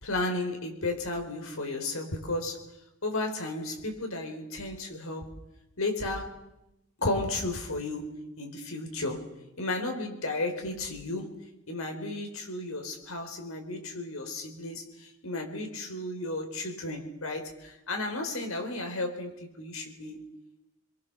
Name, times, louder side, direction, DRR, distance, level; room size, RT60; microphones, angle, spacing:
voice 1, 0.0-2.6 3.0-5.3 5.8-6.3 7.0-9.3 9.6-11.3 11.7-20.2, left 2 dB, 75° left, 4 dB, 4.2 m, -33 dB
28.0 x 22.5 x 6.8 m, 0.90 s
head